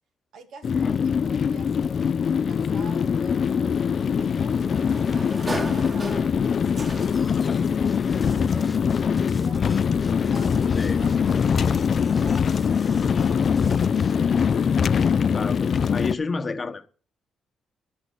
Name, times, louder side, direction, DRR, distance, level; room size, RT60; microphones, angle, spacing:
voice 1, 0.3-4.6 5.1-6.3 6.7-9.7 10.1-14.4 14.8-15.1, right 3 dB, 75° right, 2.6 m, -47 dB
sound 1, 0.6-16.1, left 7 dB, 50° left, 0.5 m, -23 dB
Sliding door, 3.5-7.4, right 2 dB, 25° right, 2.0 m, -36 dB
sound 2, 6.9-14.2, left 1 dB, 15° left, 0.9 m, -41 dB
voice 2, 15.3-16.9, left 4 dB, 30° left, 1.1 m, -31 dB
11.5 x 6.4 x 8.1 m
cardioid pair, 90°, 0 cm